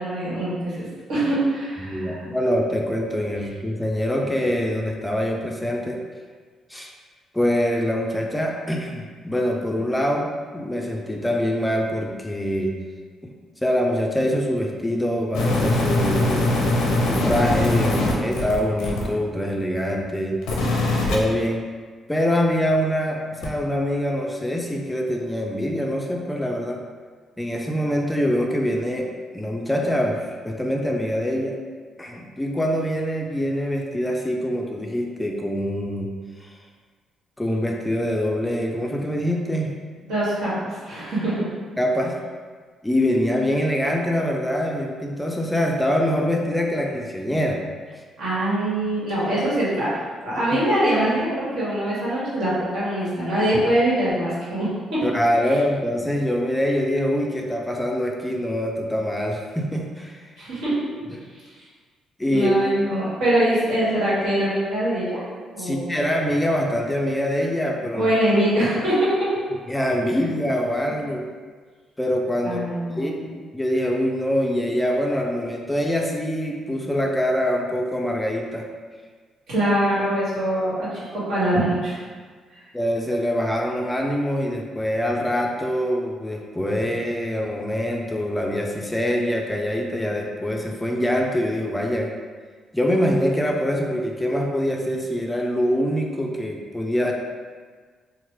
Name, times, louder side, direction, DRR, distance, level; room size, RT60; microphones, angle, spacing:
voice 1, 0.0-2.2 40.1-41.5 48.2-55.0 60.4-60.8 61.5-61.6 62.3-65.2 65.5-66.0 67.9-69.4 72.4-73.3 79.5-80.7 81.1-82.0 82.5-82.6, right 1 dB, 80° right, -9 dB, 1.3 m, -23 dB
voice 2, 1.8-6.0 6.7-6.9 7.3-12.7 13.2-13.3 13.6-20.4 21.1-21.6 22.1-26.8 27.4-29.1 29.3-30.2 30.4-31.6 32.0-36.1 36.4-36.5 37.4-39.8 41.8-42.1 42.8-47.6 47.9-48.0 50.5-50.6 55.0-60.3 61.1-61.2 62.2-62.5 62.8-62.9 65.6-68.1 69.7-71.2 72.0-78.7 82.7-92.1 92.7-97.1, equal, 10° left, 1 dB, 0.3 m, -24 dB
sound 1, 15.3-19.1 20.4-21.2 23.4-23.5, left 2 dB, 90° left, 0.5 m, -22 dB
3.0 x 2.1 x 3.0 m, 1.5 s
cardioid pair, 90°, 0 cm